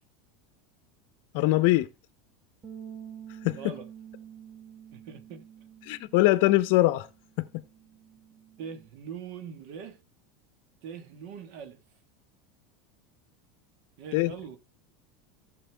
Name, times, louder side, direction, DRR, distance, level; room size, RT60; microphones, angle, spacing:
voice 1, 1.3-1.9 3.4-3.6 5.9-7.1 14.1-14.3, left 18 dB, 65° left, 0.6 m, -22 dB
sound 1, 2.6-8.9, right 9 dB, 35° right, 2.7 m, -48 dB
voice 2, 3.5-3.9 4.9-5.4 8.6-10.0 10.8-11.8 14.0-14.6, right 7 dB, 65° right, 1.6 m, -42 dB
14.5 x 6.9 x 3.4 m
hypercardioid pair, 100°, 0 cm